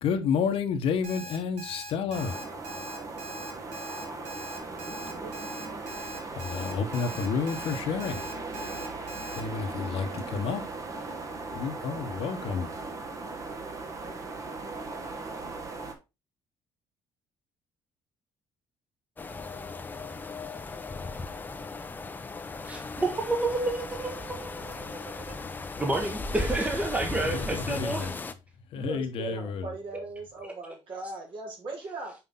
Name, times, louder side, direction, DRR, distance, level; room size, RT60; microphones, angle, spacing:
voice 1, 0.0-2.6 6.3-8.2 9.3-10.7 11.5-12.8 27.2-28.2 28.7-29.7, left 6 dB, 65° left, 1.0 m, -30 dB
Alarm, 1.0-9.4, right 1 dB, 70° right, 1.8 m, -42 dB
sound 1, 2.1-15.9, right 3 dB, 35° right, 1.2 m, -38 dB
sound 2, 19.2-28.3, left 3 dB, 20° left, 0.6 m, -37 dB
voice 2, 22.6-25.3 25.8-28.1, right 2 dB, 15° right, 1.0 m, -30 dB
voice 3, 28.7-32.1, right 3 dB, 55° right, 3.2 m, -39 dB
5.8 x 4.9 x 3.7 m
cardioid pair, 125°, 10 cm